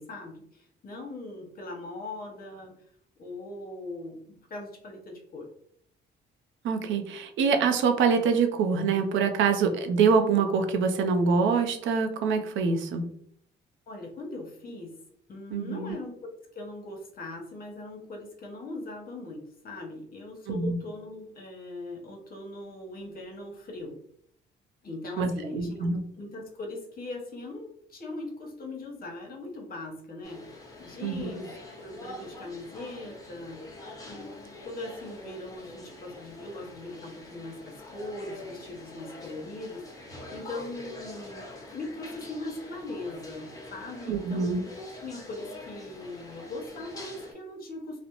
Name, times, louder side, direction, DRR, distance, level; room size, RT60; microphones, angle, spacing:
voice 1, 0.0-2.7 3.2-5.5 13.9-15.0 15.3-16.1 16.5-24.0 24.8-44.7 45.0-48.0, left 2 dB, 50° left, 1 dB, 0.9 m, -40 dB
voice 2, 6.6-13.0 15.5-16.0 20.5-20.8 25.2-26.0 31.0-31.4 44.1-44.6, right 5 dB, 75° right, 6 dB, 0.5 m, -25 dB
sound 1, 30.2-47.3, left 2 dB, 20° left, 0.9 m, -45 dB
2.4 x 2.1 x 2.9 m, 0.67 s
cardioid pair, 90°, 20 cm